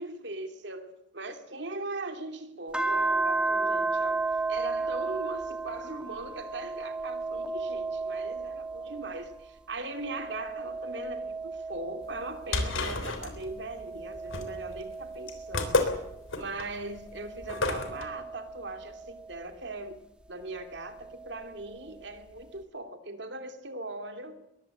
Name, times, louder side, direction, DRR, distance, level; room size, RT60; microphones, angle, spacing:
voice 1, 0.0-15.9 16.3-20.0 20.3-24.4, right 2 dB, 60° right, 7 dB, 2.7 m, -40 dB
sound 1, 2.7-9.5 9.9-12.8 13.4-16.2 16.9-19.4 20.7-21.8, right 3 dB, 5° right, 1.8 m, -34 dB
sound 2, 12.1-18.0, left 2 dB, 85° left, 3.5 m, -31 dB
21.5 x 15.0 x 8.7 m, 0.82 s
head